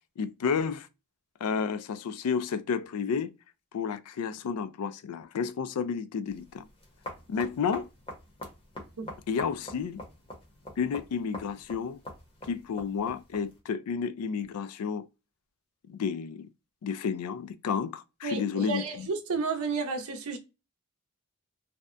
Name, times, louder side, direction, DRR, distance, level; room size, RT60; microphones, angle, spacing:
voice 1, 0.2-0.9 1.4-3.3 3.7-6.6 7.3-7.9 9.3-10.0 10.8-12.0 12.4-15.1 15.9-16.5 16.8-19.1, left 6 dB, 90° left, 0.3 m, -31 dB
sound 1, 6.3-13.6, left 1 dB, 25° left, 0.8 m, -45 dB
voice 2, 18.2-20.4, right 4 dB, 75° right, 0.6 m, -31 dB
2.7 x 2.1 x 2.3 m
head